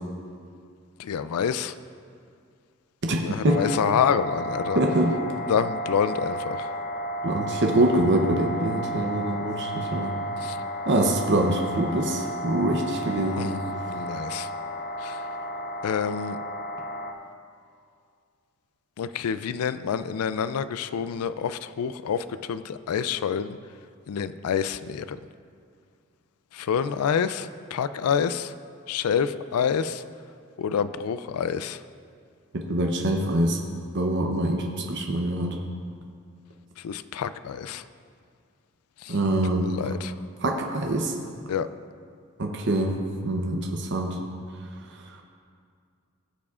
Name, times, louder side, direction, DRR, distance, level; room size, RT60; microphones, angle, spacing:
voice 1, 1.0-1.7 3.2-4.8 5.5-6.7 10.4-10.6 13.4-13.6 13.9-14.5 15.0-15.2 15.8-16.4 19.0-23.6 24.1-25.2 26.5-28.5 28.9-30.0 30.6-31.8 36.8-37.8 39.0-39.2 39.6-40.1 41.5-41.7, left 7 dB, 90° left, 13 dB, 0.4 m, -27 dB
voice 2, 3.0-3.6 4.7-5.1 7.2-10.1 10.9-13.5 32.5-33.6 33.9-35.6 39.1-39.7 40.4-41.1 42.4-42.9 43.2-44.2, right 1 dB, 55° right, 2 dB, 0.7 m, -24 dB
sound 1, 3.4-17.1, right 1 dB, 35° left, 0.7 m, -33 dB
18.5 x 7.1 x 2.4 m, 2.2 s
head